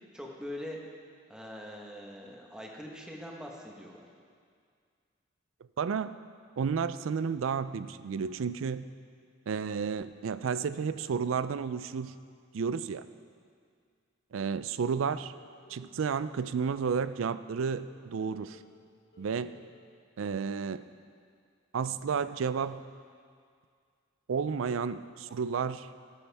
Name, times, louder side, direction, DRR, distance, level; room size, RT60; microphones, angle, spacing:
voice 1, 0.1-0.8 1.3-4.1, left 1 dB, 5° right, -1 dB, 1.2 m, -42 dB
voice 2, 5.8-6.1 6.6-8.9 9.5-12.2 12.5-13.0 14.3-15.3 15.7-18.6 19.2-19.6 20.2-20.9 21.7-22.8 24.3-25.9, right 6 dB, 85° right, 14 dB, 0.4 m, -32 dB
sound 1, 15.4-16.2 16.6-18.8 19.1-19.7, equal, 75° left, 3.7 m, -55 dB
13.0 x 12.5 x 3.5 m, 2.1 s
head